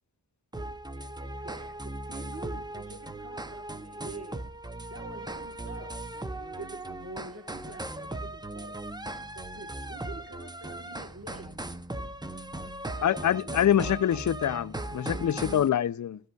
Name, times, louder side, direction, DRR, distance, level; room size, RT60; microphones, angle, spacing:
sound 1, 0.5-15.7, right 1 dB, 10° right, 0.6 m, -38 dB
voice 1, 0.9-4.4 4.9-8.8 9.3-11.5 12.9-13.8, right 3 dB, 35° right, 1.2 m, -46 dB
voice 2, 13.0-16.2, left 10 dB, 45° left, 0.4 m, -25 dB
14.0 x 7.9 x 2.3 m
cardioid pair, 45°, 42 cm